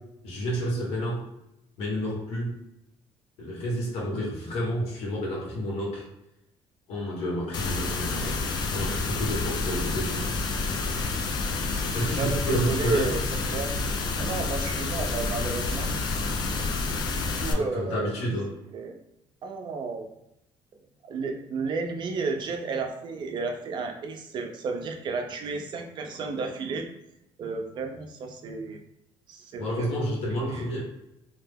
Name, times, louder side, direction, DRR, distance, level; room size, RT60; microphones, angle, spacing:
voice 1, 0.2-1.2 1.8-2.5 3.4-6.0 6.9-10.3 11.9-13.1 17.5-18.5 29.6-30.8, equal, 75° left, -3 dB, 1.3 m, -30 dB
sound 1, 7.5-17.5, left 3 dB, 40° left, 0.4 m, -29 dB
voice 2, 11.7-13.2 13.5-13.7 14.2-15.9 17.4-18.3 18.7-19.0 19.4-20.1 21.0-26.9 27.4-28.8 29.3-29.9 30.4-30.8, right 4 dB, 45° right, 4 dB, 0.5 m, -32 dB
2.7 x 2.0 x 3.4 m, 0.85 s
cardioid pair, 140°, 11 cm